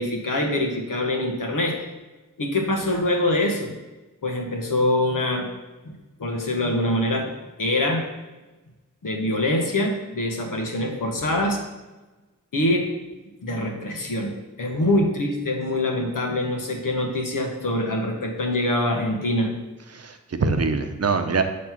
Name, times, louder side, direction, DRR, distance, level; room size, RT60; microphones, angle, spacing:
voice 1, 0.0-1.8 2.4-3.8 4.2-5.5 5.8-7.3 7.6-8.1 9.0-11.6 12.5-12.9 13.4-14.3 14.6-19.5, left 1 dB, 85° left, 2 dB, 1.2 m, -24 dB
voice 2, 19.9-21.4, right 4 dB, 50° right, 7 dB, 0.7 m, -24 dB
7.5 x 3.2 x 5.9 m, 1.1 s
wide cardioid pair, 75°, 32 cm